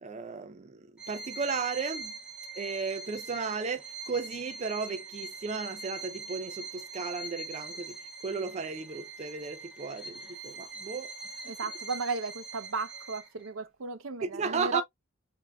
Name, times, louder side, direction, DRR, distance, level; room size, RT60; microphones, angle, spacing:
voice 1, 0.0-0.8 1.1-2.1 2.6-8.0 8.2-11.1 14.2-14.8, right 5 dB, 35° right, 0.4 m, -34 dB
Bowed string instrument, 1.0-13.5, right 3 dB, 5° right, 0.9 m, -43 dB
voice 2, 11.4-14.8, right 4 dB, 75° right, 0.7 m, -35 dB
4.9 x 2.6 x 2.2 m
head